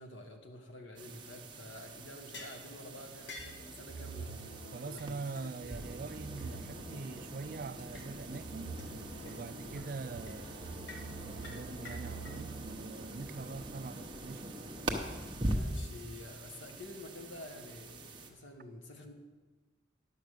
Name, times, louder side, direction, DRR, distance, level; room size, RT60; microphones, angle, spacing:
voice 1, 0.0-4.3 4.8-6.0 15.5-19.1, left 1 dB, 85° left, 1.5 m, -49 dB
sound 1, 1.0-18.3, right 1 dB, 25° right, 0.9 m, -43 dB
sound 2, 2.3-2.6 3.3-3.6 4.3-4.4 4.6-4.7 5.0-5.1 5.3-5.4 5.9-6.0 6.4-6.5 7.8-8.1 8.3-8.4 8.8-8.9 9.2-9.3 9.7-10.0 10.3-10.4 10.9-11.1 11.4-12.3, left 2 dB, 70° left, 1.6 m, -48 dB
sound 3, 3.4-12.9, right 4 dB, 50° left, 3.7 m, -48 dB
voice 2, 4.7-8.7 9.2-14.6, right 4 dB, 45° right, 0.3 m, -44 dB
11.0 x 7.0 x 6.5 m
head